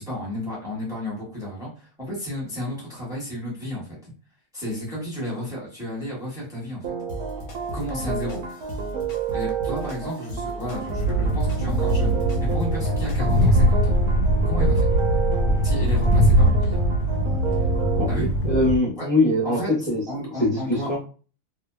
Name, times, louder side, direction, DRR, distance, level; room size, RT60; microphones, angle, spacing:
voice 1, 0.0-4.1 4.5-6.9 7.7-8.4 9.3-13.9 14.4-14.9 15.6-16.8 18.1-18.3 19.0-19.1 19.4-19.7 20.1-21.0, equal, 5° right, -5 dB, 0.8 m, -32 dB
sound 1, 6.8-18.1, right 7 dB, 70° right, 1.0 m, -31 dB
sound 2, 7.1-13.5, equal, 65° left, 0.8 m, -36 dB
Train, 11.0-18.8, equal, 90° left, 1.2 m, -21 dB
voice 2, 18.4-20.0 20.4-21.0, left 2 dB, 30° left, -8 dB, 0.5 m, -22 dB
2.6 x 2.1 x 2.3 m, 0.38 s
omnidirectional pair, 1.8 m